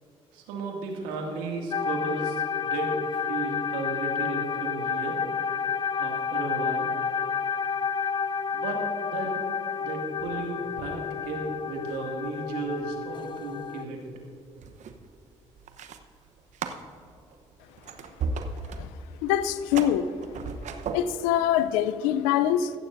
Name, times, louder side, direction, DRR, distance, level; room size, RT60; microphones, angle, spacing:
voice 1, 0.3-5.2 5.9-6.9 8.5-9.4 9.8-14.0, right 3 dB, 85° right, 0 dB, 2.2 m, -34 dB
sound 1, 1.7-13.8, left 7 dB, 35° left, 0.3 m, -30 dB
sound 2, 11.9-12.3 12.5-12.9 13.7-21.0, right 4 dB, 65° right, 0.9 m, -37 dB
voice 2, 19.2-20.1 20.9-22.7, left 10 dB, 85° left, 14 dB, 0.5 m, -24 dB
16.0 x 14.5 x 2.6 m, 2.7 s
hypercardioid pair, 55°, 13 cm